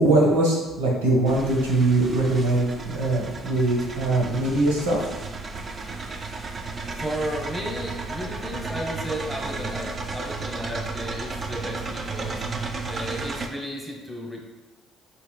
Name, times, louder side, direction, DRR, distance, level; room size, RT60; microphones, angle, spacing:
voice 1, 0.0-5.0, right 2 dB, 90° right, -2 dB, 1.1 m, -21 dB
sound 1, 1.2-13.5, right 3 dB, 40° right, 0.6 m, -33 dB
voice 2, 7.0-12.4 12.9-14.4, equal, 5° left, -1 dB, 1.1 m, -33 dB
5.8 x 4.2 x 2.2 m, 1.2 s
hypercardioid pair, 60°, 0 cm